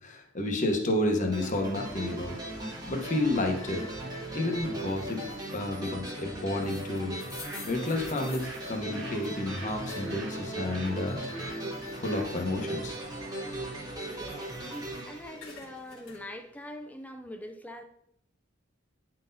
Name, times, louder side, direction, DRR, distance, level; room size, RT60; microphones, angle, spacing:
voice 1, 0.0-2.3 2.9-3.9 4.3-5.2 5.5-7.2 7.7-11.2 11.9-13.0, left 2 dB, 40° left, 0.9 m, -30 dB
sound 1, 1.3-16.2, right 1 dB, 20° right, 1.1 m, -38 dB
sound 2, 6.6-10.2 10.6-12.9 13.4-14.9 15.2-16.2, left 4 dB, 85° left, 1.5 m, -49 dB
Bird, 7.1-13.3, right 3 dB, 65° right, 1.2 m, -48 dB
voice 2, 14.0-14.6 15.0-17.8, left 1 dB, 10° left, 0.4 m, -43 dB
9.6 x 3.8 x 2.7 m
head